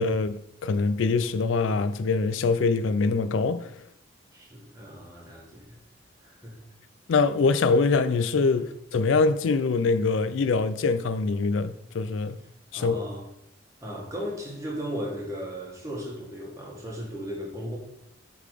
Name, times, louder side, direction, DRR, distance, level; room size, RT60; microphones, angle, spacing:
voice 1, 0.0-3.7 7.1-12.4 12.7-13.0, left 4 dB, 80° left, 0.4 m, -24 dB
voice 2, 4.3-5.8 6.2-6.6 8.6-8.7 12.7-13.2 13.8-17.8, equal, 15° right, 1.9 m, -36 dB
8.3 x 3.9 x 5.0 m
head